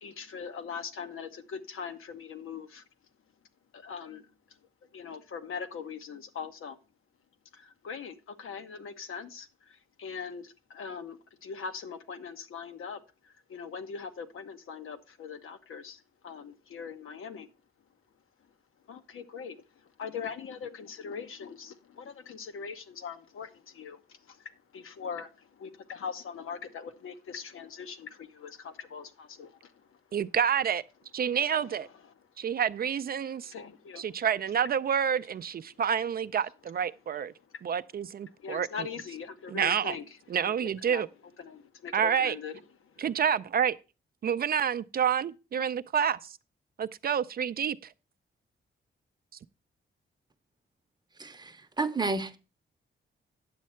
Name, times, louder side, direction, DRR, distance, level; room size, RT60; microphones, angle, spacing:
voice 1, 0.0-2.8 3.7-4.2 4.9-6.8 7.5-17.5 18.9-30.0 31.5-32.0 32.4-32.5 33.5-34.2 37.5-37.6 38.4-40.0 40.3-41.0 41.4-42.5 42.8-43.1, left 6 dB, 80° left, 1.1 m, -41 dB
voice 2, 30.1-30.8 31.1-31.9 32.4-33.5 34.0-37.3 37.6-38.7 39.5-40.0 40.3-41.1 41.9-42.4 43.0-43.8 44.2-46.3 46.8-47.9, right 8 dB, 45° right, 0.4 m, -28 dB
voice 3, 51.2-52.4, right 3 dB, 20° right, 0.7 m, -31 dB
9.3 x 7.4 x 4.3 m
wide cardioid pair, 165°, 21 cm